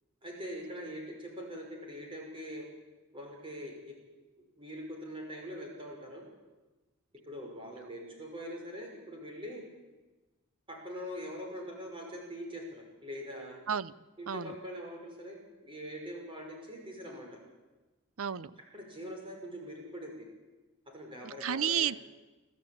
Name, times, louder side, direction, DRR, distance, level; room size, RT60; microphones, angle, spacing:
voice 1, 0.2-2.7 3.1-3.9 4.6-6.3 7.2-9.6 10.7-13.6 14.2-17.3 18.7-20.3 20.9-21.9, equal, 25° right, 0 dB, 5.7 m, -43 dB
voice 2, 18.2-18.5 21.2-22.0, right 8 dB, 75° right, 18 dB, 0.6 m, -31 dB
25.0 x 14.0 x 8.7 m, 1.2 s
head